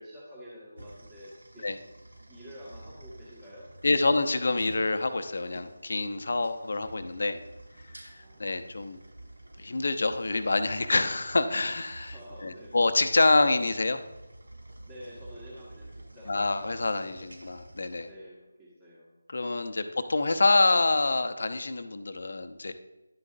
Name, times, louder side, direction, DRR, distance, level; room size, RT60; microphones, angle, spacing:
voice 1, 0.0-1.7 2.3-3.8 8.0-8.5 12.0-12.7 14.8-16.5 18.0-19.1, equal, 15° right, -7 dB, 1.6 m, -48 dB
sound 1, 0.8-18.1, right 1 dB, 75° right, 1.1 m, -49 dB
voice 2, 3.8-7.4 7.9-9.0 9.6-14.0 16.3-18.1 19.3-22.7, left 3 dB, 60° left, 10 dB, 0.7 m, -26 dB
10.5 x 8.1 x 2.6 m, 1.1 s
figure-of-eight pair, 160°, 0 cm